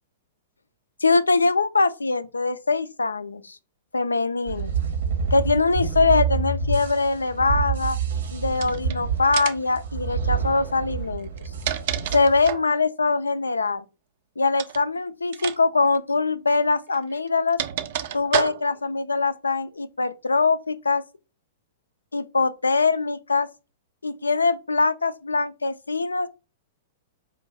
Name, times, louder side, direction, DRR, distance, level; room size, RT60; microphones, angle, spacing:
voice 1, 1.0-3.6 3.9-4.7 5.3-8.0 8.3-11.3 12.1-13.8 14.4-17.6 18.1-21.0 22.1-23.5 24.0-26.3, left 3 dB, 75° left, 0.3 m, -22 dB
sound 1, 4.5-12.5, right 6 dB, 65° right, 0.9 m, -28 dB
sound 2, 8.5-8.9 9.3-9.7 11.2-12.7 14.5-14.8 15.3-15.6 15.8-16.0 16.9-18.9, right 10 dB, 50° right, 0.4 m, -29 dB
4.9 x 2.5 x 3.2 m
figure-of-eight pair, 105°, 0 cm